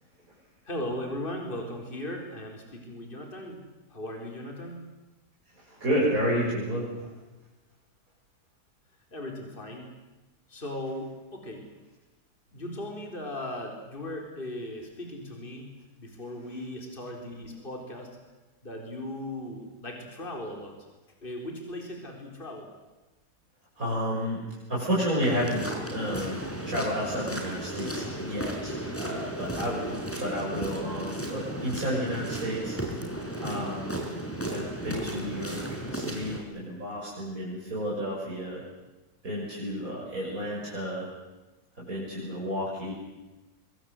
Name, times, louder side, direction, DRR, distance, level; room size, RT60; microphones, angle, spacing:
voice 1, 0.6-3.6 3.9-4.8 9.1-9.9 10.5-11.6 12.5-18.1 18.6-20.9 21.2-22.7 30.5-30.6, left 1 dB, 30° left, 2 dB, 4.5 m, -38 dB
voice 2, 5.6-7.1 23.8-24.4 24.7-33.1 33.4-34.0 34.5-38.6 39.2-41.1 41.8-42.9, equal, 55° right, -6 dB, 7.2 m, -31 dB
sound 1, 25.2-36.4, right 1 dB, 10° left, 4.4 m, -35 dB
26.0 x 23.0 x 7.9 m, 1.1 s
omnidirectional pair, 1.8 m